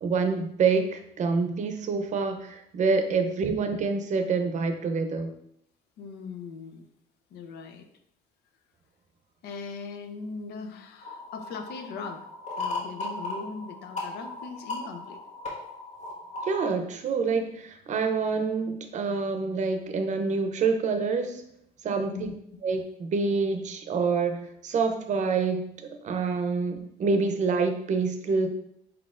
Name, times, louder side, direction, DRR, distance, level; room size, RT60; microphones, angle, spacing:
voice 1, 0.0-5.3 16.4-21.4 21.8-22.3 22.6-25.7 26.0-28.5, right 4 dB, 45° right, 7 dB, 0.6 m, -27 dB
voice 2, 6.0-6.9 7.3-7.9 9.4-12.3 12.6-15.2 21.9-22.4, left 4 dB, 75° left, 6 dB, 0.6 m, -39 dB
sound 1, 11.0-16.7, left 2 dB, 45° left, 1.5 m, -37 dB
4.4 x 3.9 x 2.5 m, 0.71 s
cardioid pair, 110°, 17 cm